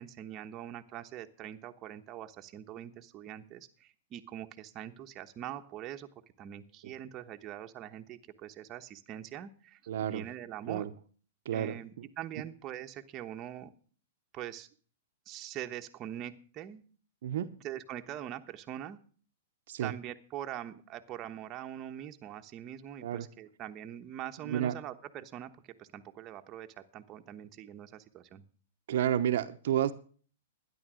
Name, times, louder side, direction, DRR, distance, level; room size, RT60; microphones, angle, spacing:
voice 1, 0.0-6.1 6.4-10.9 11.5-13.7 14.3-14.7 15.3-16.8 17.6-19.0 19.8-28.4, right 11 dB, 30° right, 6 dB, 1.1 m, -43 dB
voice 2, 9.9-10.2 10.7-10.9 11.5-11.7 17.2-17.5 19.7-19.9 23.0-23.3 24.4-24.7 28.9-29.9, right 10 dB, 65° right, 8 dB, 0.9 m, -30 dB
12.5 x 10.5 x 6.3 m, 0.44 s
hypercardioid pair, 130°, 0 cm